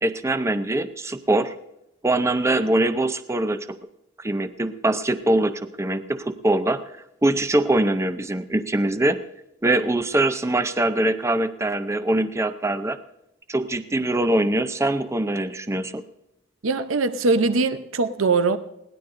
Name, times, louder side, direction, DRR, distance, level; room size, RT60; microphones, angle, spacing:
voice 1, 0.0-1.6 2.0-3.8 4.2-6.8 7.2-9.2 9.6-13.0 13.5-16.0, right 1 dB, 15° right, 0.5 m, -23 dB
voice 2, 16.6-18.6, right 3 dB, 90° right, 0.7 m, -21 dB
21.0 x 17.5 x 2.6 m
head